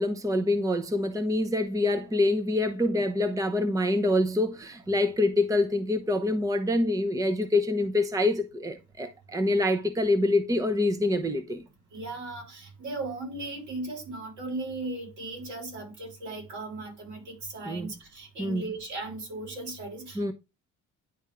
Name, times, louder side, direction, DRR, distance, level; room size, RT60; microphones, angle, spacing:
voice 1, 0.0-11.6 17.7-17.9 18.4-18.6 20.2-20.3, left 2 dB, 10° right, 0.8 m, -26 dB
voice 2, 11.9-20.3, right 2 dB, 70° right, 5.0 m, -37 dB
10.5 x 3.6 x 3.4 m
cardioid pair, 90°, 30 cm